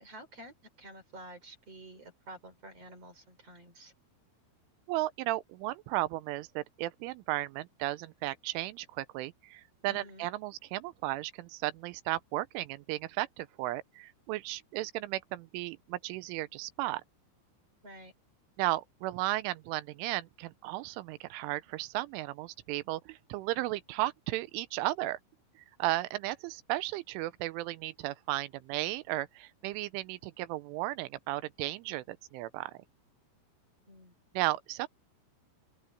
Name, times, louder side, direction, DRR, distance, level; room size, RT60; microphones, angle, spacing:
voice 1, 0.0-3.9 9.9-10.3 17.8-18.1 33.9-34.2, right 1 dB, 30° right, 5.3 m, -50 dB
voice 2, 4.9-17.0 18.6-25.2 25.8-32.7 34.3-34.9, right 17 dB, 85° right, 3.1 m, -35 dB
open air
omnidirectional pair, 5.8 m